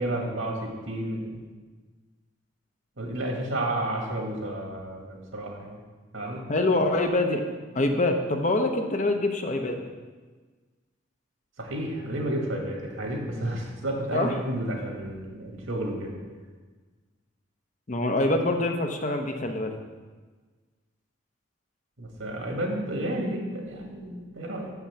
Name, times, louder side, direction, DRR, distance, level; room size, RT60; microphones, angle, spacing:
voice 1, 0.0-1.4 3.0-5.8 6.1-6.4 11.6-16.2 22.0-24.7, right 1 dB, 80° right, 0 dB, 2.0 m, -31 dB
voice 2, 6.5-7.5 7.7-9.8 14.1-14.3 17.9-19.7, left 2 dB, 35° left, 5 dB, 0.7 m, -25 dB
6.9 x 5.8 x 7.0 m, 1.4 s
head